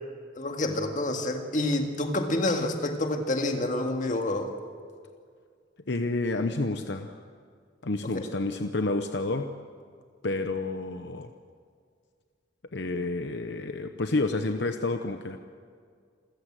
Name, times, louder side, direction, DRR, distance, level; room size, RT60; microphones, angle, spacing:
voice 1, 0.4-4.5 8.1-8.2, left 1 dB, 40° left, 4 dB, 2.0 m, -28 dB
voice 2, 5.9-7.2 7.8-9.5 10.2-11.3 12.7-15.4, left 2 dB, 70° left, 7 dB, 0.9 m, -29 dB
28.0 x 15.0 x 7.7 m, 2.1 s
head